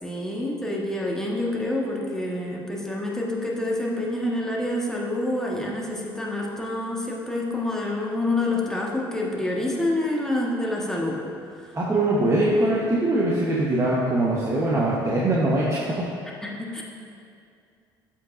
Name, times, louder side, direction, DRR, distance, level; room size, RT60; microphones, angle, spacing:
voice 1, 0.0-11.2 11.5-11.8 16.4-16.8, left 1 dB, 5° left, -3 dB, 1.7 m, -27 dB
voice 2, 11.7-16.0, right 1 dB, 25° right, -6 dB, 1.3 m, -22 dB
13.5 x 5.7 x 2.7 m, 2.4 s
figure-of-eight pair, 55°, 12 cm